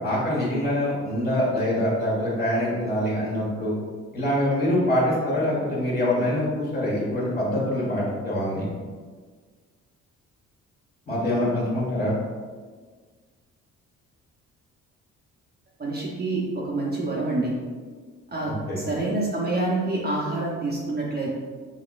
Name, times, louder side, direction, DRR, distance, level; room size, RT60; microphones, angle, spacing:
voice 1, 0.0-3.7 4.1-8.7 11.1-12.1 18.4-18.8, left 1 dB, 30° left, -6 dB, 1.4 m, -24 dB
voice 2, 15.8-17.5 18.3-21.3, right 2 dB, 30° right, -4 dB, 0.7 m, -27 dB
3.9 x 2.9 x 2.4 m, 1.5 s
cardioid pair, 90°, 30 cm